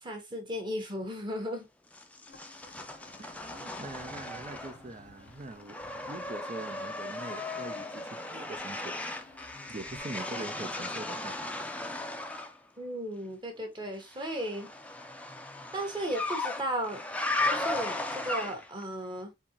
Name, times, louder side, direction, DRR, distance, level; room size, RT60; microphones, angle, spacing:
voice 1, 0.0-1.7 12.8-14.7 15.7-17.0 17.4-19.3, equal, 25° right, 1.3 m, -35 dB
sound 1, 1.9-5.0 5.3-12.6 14.1-18.8, left 2 dB, 10° left, 0.5 m, -36 dB
sound 2, 2.3-10.0, left 2 dB, 85° left, 0.8 m, -55 dB
voice 2, 3.2-9.2 9.7-11.4, right 2 dB, 45° right, 0.5 m, -43 dB
4.4 x 3.6 x 2.9 m
head